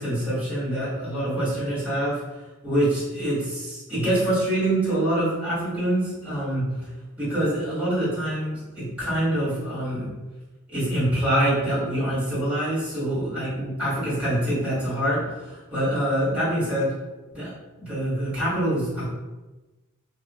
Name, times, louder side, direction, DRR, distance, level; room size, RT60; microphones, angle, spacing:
voice 1, 0.0-2.2 2.6-6.7 7.2-10.1 10.7-16.9 17.3-17.5 17.8-19.1, right 1 dB, 5° right, -12 dB, 1.5 m, -25 dB
2.4 x 2.4 x 2.3 m, 1.2 s
head